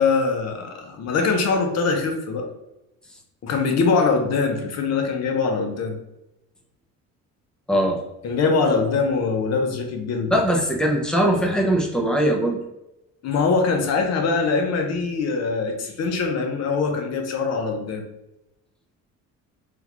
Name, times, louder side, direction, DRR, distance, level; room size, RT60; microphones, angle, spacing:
voice 1, 0.0-2.5 3.4-6.0 8.2-10.3 13.2-18.0, left 4 dB, 50° left, 4 dB, 0.8 m, -22 dB
voice 2, 7.7-8.0 10.3-12.6, right 1 dB, ahead, 0 dB, 0.6 m, -20 dB
3.8 x 2.4 x 2.9 m, 0.91 s
cardioid pair, 115°, 33 cm